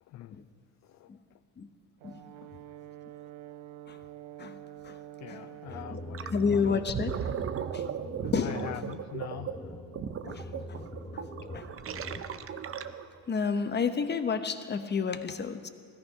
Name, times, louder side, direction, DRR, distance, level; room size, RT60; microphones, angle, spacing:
voice 1, 0.1-0.4 0.8-1.1 5.2-6.9 7.2-7.3 8.4-9.7, left 13 dB, 45° left, 12 dB, 0.4 m, -43 dB
Brass instrument, 2.0-6.2, right 13 dB, 75° right, 0.7 m, -47 dB
sound 1, 5.6-12.9, left 1 dB, 10° left, 1.4 m, -43 dB
Gurgling, 6.1-6.4 6.7-13.2, right 8 dB, 35° right, 0.7 m, -37 dB
voice 2, 6.3-7.1 7.7-7.8 8.3-8.6 10.2-10.4 11.1-11.2 11.5-11.6 13.3-15.7, left 5 dB, 25° left, 9 dB, 1.0 m, -30 dB
17.0 x 14.0 x 5.3 m, 2.1 s
supercardioid pair, 90°, 40 cm